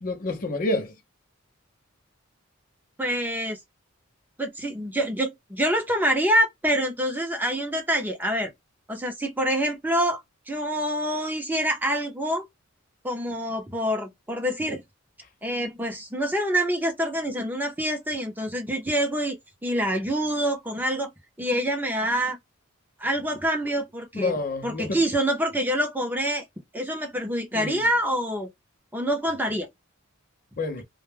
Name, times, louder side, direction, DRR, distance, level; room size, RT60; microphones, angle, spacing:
voice 1, 0.0-0.9 24.1-25.0 27.5-27.8 30.6-30.8, left 2 dB, 40° left, 0.6 m, -28 dB
voice 2, 3.0-3.6 4.4-8.5 8.9-10.2 10.5-12.4 13.0-14.8 15.4-19.3 19.6-21.1 21.4-22.4 23.0-24.4 24.6-26.4 26.7-28.5 28.9-29.7, equal, 10° right, 0.6 m, -26 dB
2.1 x 2.1 x 3.1 m
head